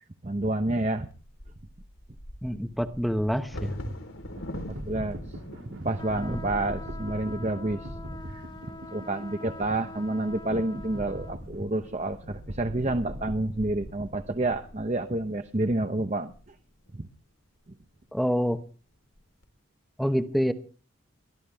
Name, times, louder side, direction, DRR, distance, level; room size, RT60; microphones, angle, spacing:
voice 1, 0.2-1.1 4.9-5.2 5.7-7.9 8.3-8.4 8.9-16.3 17.0-17.1, right 2 dB, 35° right, 7 dB, 0.8 m, -29 dB
Bird vocalization bird call bird song / Wind / Thunder, 1.1-17.0 17.6-17.7 18.1-18.5 18.9-19.4, equal, 90° left, 3.8 m, -45 dB
voice 2, 2.4-3.7 6.3-6.4 18.1-18.6 20.0-20.5, equal, ahead, 8 dB, 0.9 m, -26 dB
sound 1, 4.4-13.4, equal, 70° right, 2.4 m, -41 dB
sound 2, 6.0-11.4, left 2 dB, 25° left, 1.5 m, -44 dB
23.0 x 15.0 x 3.5 m, 0.39 s
head